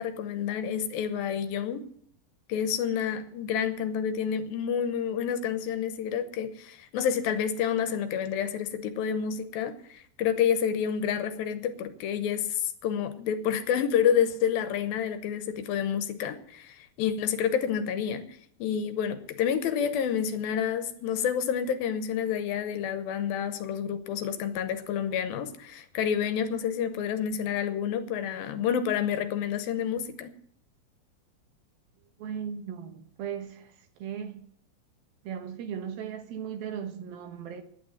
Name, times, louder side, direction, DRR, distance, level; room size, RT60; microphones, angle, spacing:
voice 1, 0.0-1.9 2.5-30.3, left 8 dB, 85° left, 2.7 m, -29 dB
voice 2, 32.2-33.7 34.0-34.4 35.2-37.6, right 8 dB, 80° right, 3.0 m, -37 dB
10.5 x 9.0 x 9.4 m
omnidirectional pair, 4.2 m